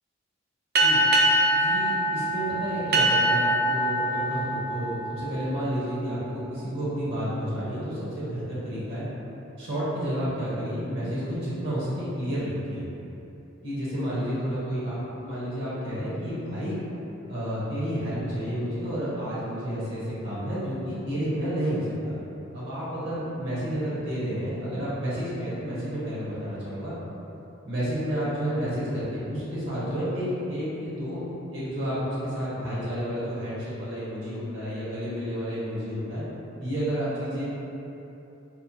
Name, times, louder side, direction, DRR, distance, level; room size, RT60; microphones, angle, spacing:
sound 1, 0.7-5.8, right 1 dB, 50° right, 0.3 m, -24 dB
voice 1, 1.5-9.1 9.6-12.9 13.6-16.8 17.3-22.2 22.5-26.9 27.6-31.2 31.5-36.2 36.6-37.4, equal, 65° right, -10 dB, 1.0 m, -30 dB
4.2 x 2.1 x 2.8 m, 3.0 s
head